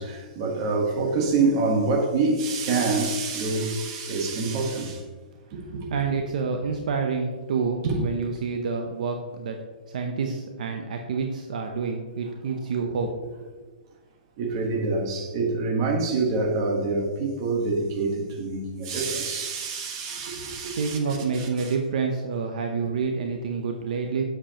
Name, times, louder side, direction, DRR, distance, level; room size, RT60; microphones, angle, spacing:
voice 1, 0.0-5.0 5.5-5.9 7.8-8.0 14.4-21.7, right 3 dB, 30° right, 1.1 m, -26 dB
voice 2, 5.9-9.6 9.9-13.1 20.8-24.2, right 5 dB, 55° right, 0.7 m, -28 dB
7.6 x 6.9 x 2.9 m
hypercardioid pair, 175°, 5 cm